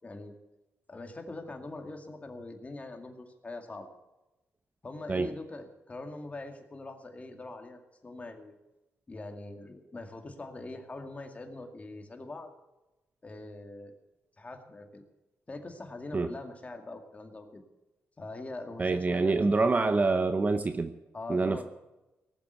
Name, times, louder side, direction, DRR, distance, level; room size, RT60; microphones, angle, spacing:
voice 1, 0.0-0.3 0.9-3.9 4.8-8.6 9.1-12.5 13.2-14.0 14.4-15.0 15.5-17.6 18.2-20.0 21.1-21.6, left 2 dB, 30° left, 5 dB, 2.2 m, -43 dB
voice 2, 18.8-20.9 21.3-21.6, right 3 dB, 30° right, 9 dB, 0.8 m, -26 dB
18.5 x 7.5 x 8.1 m, 1.0 s
cardioid pair, 90°, 5 cm